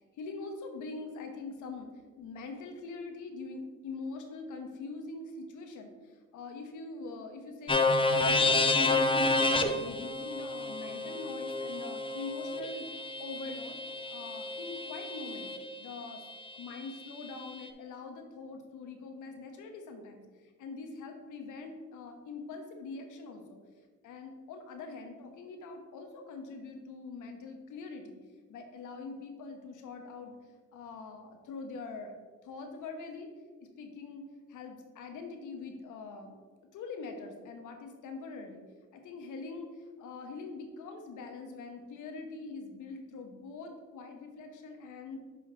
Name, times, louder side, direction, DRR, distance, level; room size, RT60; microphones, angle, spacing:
voice 1, 0.2-1.9 2.2-12.9 13.2-13.8 14.1-15.5 15.8-16.2 16.5-23.6 24.0-28.2 28.5-30.4 30.7-32.1 32.4-33.3 33.6-34.2 34.5-36.4 36.7-38.6 38.9-45.2, left 4 dB, 80° left, 4 dB, 1.1 m, -43 dB
sound 1, 7.7-15.6, left 2 dB, 20° left, 0.6 m, -30 dB
6.4 x 5.0 x 3.9 m, 1.4 s
cardioid pair, 90°, 30 cm